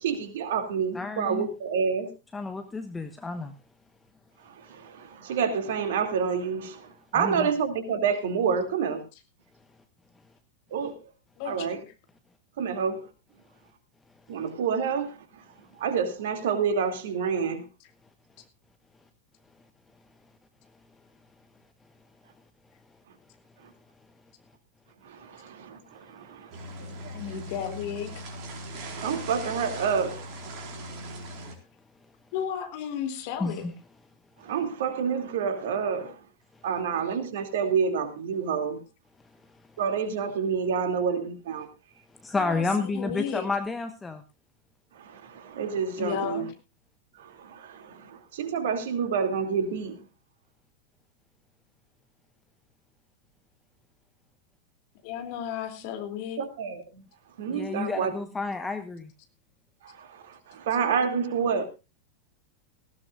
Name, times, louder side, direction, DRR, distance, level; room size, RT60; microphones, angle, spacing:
voice 1, 0.0-2.1 4.5-9.0 10.7-11.0 11.5-11.8 12.6-13.0 14.3-15.1 15.8-17.6 25.0-26.5 28.9-30.3 34.4-36.2 36.6-38.8 39.8-41.7 45.0-46.4 47.2-50.0 56.4-57.0 57.4-58.1 59.8-61.6, right 6 dB, 55° right, 2.6 m, -28 dB
voice 2, 0.9-1.5 2.3-3.5 7.1-7.5 33.4-33.7 42.2-44.2 57.5-59.1, left 3 dB, 10° left, 1.2 m, -30 dB
sound 1, 26.5-31.6, right 1 dB, 40° right, 4.3 m, -39 dB
voice 3, 27.1-28.2 32.3-33.6 42.3-43.4 46.0-46.5 55.0-56.4, left 8 dB, 45° left, 2.9 m, -33 dB
18.5 x 16.0 x 2.5 m
figure-of-eight pair, 90°, 0 cm